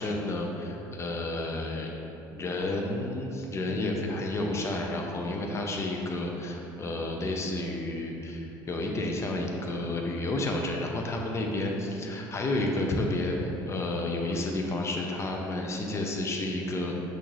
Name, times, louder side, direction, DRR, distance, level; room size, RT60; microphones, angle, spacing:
voice 1, 0.0-2.0 2.3-16.9, left 2 dB, 25° left, 1 dB, 0.6 m, -31 dB
5.8 x 2.5 x 3.0 m, 2.9 s
figure-of-eight pair, 60°, 11 cm